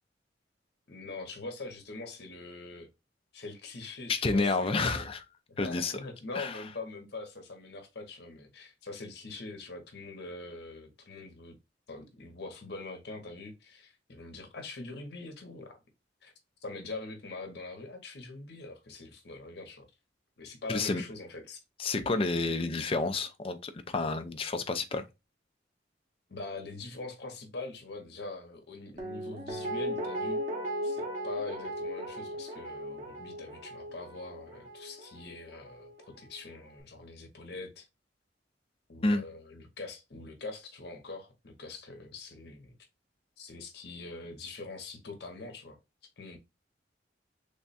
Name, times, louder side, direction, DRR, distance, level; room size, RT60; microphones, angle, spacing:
voice 1, 0.9-2.9 3.3-5.1 5.5-11.6 11.9-15.8 16.2-16.3 16.6-19.9 20.4-21.6 26.3-30.4 30.8-37.8 38.9-42.7 43.4-45.8 46.2-46.4, left 3 dB, 60° left, 0.9 m, -43 dB
voice 2, 4.1-5.2 5.6-5.9 6.3-6.6 20.7-21.0 21.8-25.0 39.0-39.2, left 3 dB, 30° left, 0.4 m, -29 dB
Guitar, 29.0-36.0 36.3-36.4, equal, 40° right, 0.9 m, -37 dB
3.5 x 2.2 x 4.0 m
head